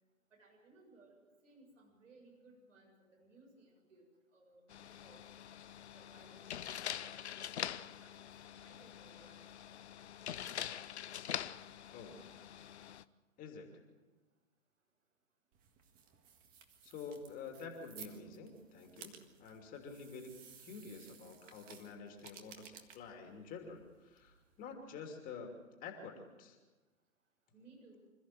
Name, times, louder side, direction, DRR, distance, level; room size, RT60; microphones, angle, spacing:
voice 1, 0.3-4.1 4.3-4.6 5.0-5.2 5.9-7.3 7.6-7.7 8.0-9.5 27.5-28.1, right 2 dB, 70° right, 0 dB, 7.3 m, -62 dB
sound 1, 4.7-13.0, left 10 dB, 55° left, 0.8 m, -44 dB
voice 2, 13.4-13.7 16.8-26.6, left 5 dB, 20° left, 3 dB, 2.8 m, -49 dB
sound 2, 15.5-24.7, right 7 dB, 20° right, 1.8 m, -58 dB
26.5 x 14.0 x 7.8 m, 1.2 s
figure-of-eight pair, 125°, 40 cm